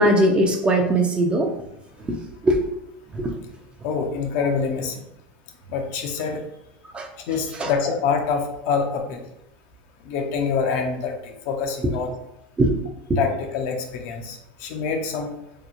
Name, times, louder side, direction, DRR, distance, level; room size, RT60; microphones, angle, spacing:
voice 1, 0.0-1.5 2.0-2.2 2.4-2.6 3.1-3.3 6.9-7.1 7.6-7.7 12.6-12.7 13.1-13.2, right 1 dB, 20° right, 2 dB, 0.4 m, -20 dB
voice 2, 3.8-5.0 5.7-6.4 7.3-9.2 10.0-12.1 13.2-15.3, left 5 dB, 60° left, 3 dB, 0.5 m, -26 dB
2.8 x 2.0 x 2.5 m, 0.82 s
hypercardioid pair, 105°, 5 cm